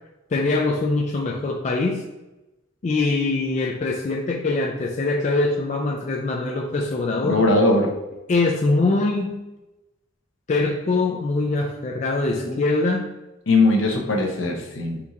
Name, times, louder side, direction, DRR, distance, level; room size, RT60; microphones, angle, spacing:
voice 1, 0.3-2.1 2.8-7.5 8.3-9.4 10.5-13.1, left 3 dB, 35° left, 1 dB, 0.3 m, -23 dB
voice 2, 7.2-7.9 12.4-12.6 13.5-15.0, left 2 dB, 65° left, 2 dB, 0.7 m, -20 dB
4.3 x 2.4 x 3.9 m, 1.0 s
head